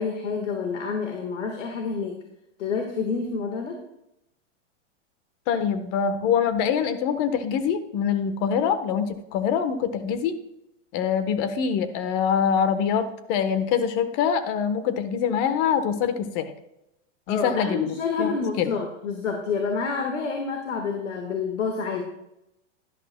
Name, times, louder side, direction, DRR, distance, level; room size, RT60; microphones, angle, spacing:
voice 1, 0.0-2.2 2.6-3.8 17.3-22.0, left 5 dB, 85° left, 3 dB, 1.6 m, -28 dB
voice 2, 5.5-10.4 10.9-16.5 17.3-18.3 18.6-18.7, left 7 dB, 45° left, 10 dB, 1.2 m, -24 dB
11.5 x 11.5 x 2.2 m, 0.86 s
hypercardioid pair, 130°, 36 cm